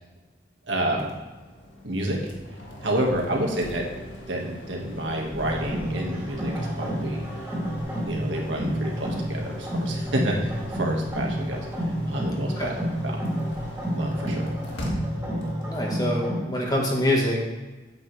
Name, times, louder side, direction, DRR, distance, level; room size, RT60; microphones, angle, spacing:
voice 1, 0.7-1.1 1.8-2.2 2.8-3.8 4.3-7.2 8.1-12.7 13.0-13.2 14.0-14.5, right 1 dB, 85° right, 0 dB, 1.8 m, -29 dB
sound 1, 0.9-16.1, equal, 80° left, 1.7 m, -40 dB
sound 2, 5.3-16.4, equal, 10° right, 2.7 m, -30 dB
voice 2, 15.6-17.4, left 1 dB, 20° left, -2 dB, 1.5 m, -25 dB
8.7 x 8.2 x 3.4 m, 1.2 s
head